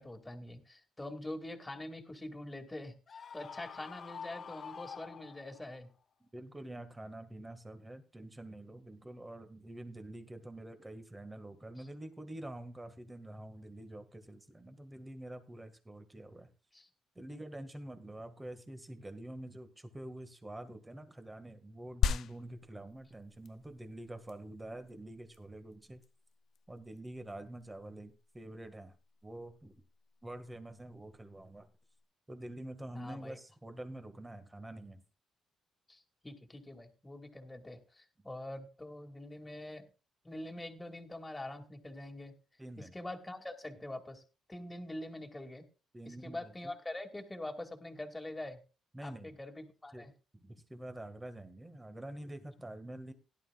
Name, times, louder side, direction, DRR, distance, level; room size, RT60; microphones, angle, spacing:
voice 1, 0.0-5.9 16.7-16.9 17.3-17.4 32.9-33.4 35.9-39.9 40.2-42.3 42.8-44.2 44.5-45.6 46.1-48.6 49.0-50.1, left 1 dB, 15° left, 4 dB, 2.4 m, -44 dB
Screaming, 3.1-5.8, left 6 dB, 50° left, 1.0 m, -47 dB
voice 2, 6.2-16.5 17.2-26.0 26.7-28.9 29.2-29.7 30.2-31.7 32.3-35.0 42.6-42.9 45.9-46.7 48.9-49.3 49.9-50.1 50.3-53.1, right 1 dB, 15° right, 8 dB, 1.9 m, -47 dB
sound 1, 22.0-32.0, left 7 dB, 70° left, 0.5 m, -40 dB
17.0 x 11.0 x 2.4 m, 0.32 s
cardioid pair, 90°, 0 cm